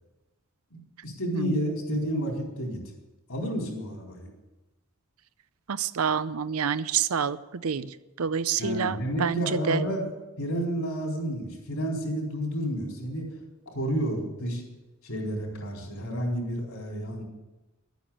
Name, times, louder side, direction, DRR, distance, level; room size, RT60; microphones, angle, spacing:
voice 1, 0.7-2.8 3.3-4.3 8.6-10.1 10.4-13.3 13.7-14.6 15.0-17.2, equal, 70° left, 0 dB, 4.2 m, -30 dB
voice 2, 1.3-2.0 5.7-9.8, right 7 dB, 75° right, 15 dB, 0.6 m, -28 dB
12.0 x 9.3 x 8.7 m, 1.1 s
head